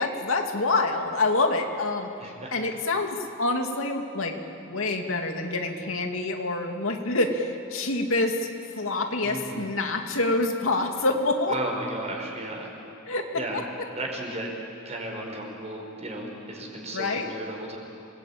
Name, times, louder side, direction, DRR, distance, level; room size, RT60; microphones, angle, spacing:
voice 1, 0.0-4.4 4.6-8.5 8.8-11.6 13.1-13.6 16.9-17.3, left 2 dB, 90° left, 3 dB, 2.4 m, -27 dB
voice 2, 2.2-2.5 9.2-9.6 11.5-12.7 13.3-13.6 13.9-14.5 14.9-17.8, right 1 dB, 35° right, 0 dB, 5.2 m, -34 dB
27.0 x 20.0 x 8.8 m, 2.8 s
head